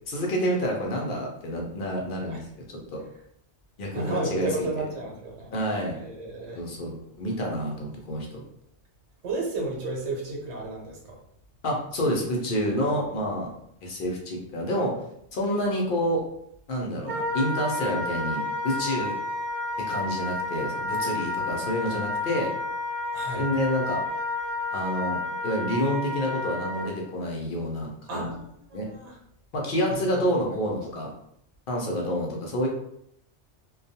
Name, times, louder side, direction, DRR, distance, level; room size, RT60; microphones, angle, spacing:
voice 1, 0.1-2.4 2.9-3.0 3.8-4.7 5.5-6.0 6.5-8.4 11.6-13.5 13.8-14.9 15.3-16.2 16.7-19.1 19.9-22.5 23.4-24.0 24.7-28.3 28.7-28.9 29.5-31.1 31.7-32.7, equal, 55° left, -1 dB, 0.7 m, -28 dB
voice 2, 3.9-5.5 5.9-6.6 9.2-11.2 23.1-23.4 28.1-29.2 29.9-30.2, right 2 dB, 75° right, -1 dB, 1.1 m, -33 dB
Wind instrument woodwind instrument, 17.1-26.9, left 2 dB, 55° right, 0.5 m, -31 dB
2.3 x 2.2 x 2.6 m, 0.73 s
omnidirectional pair, 1.2 m